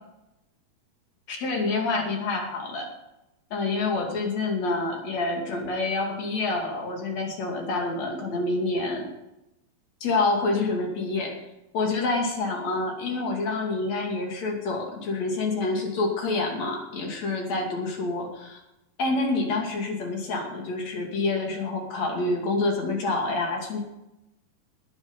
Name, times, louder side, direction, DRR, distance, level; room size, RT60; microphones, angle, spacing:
voice 1, 1.3-2.9 3.5-9.1 10.0-11.4 11.7-18.6 19.0-23.8, left 3 dB, 50° left, 1 dB, 3.5 m, -27 dB
20.0 x 7.6 x 5.4 m, 0.89 s
omnidirectional pair, 4.2 m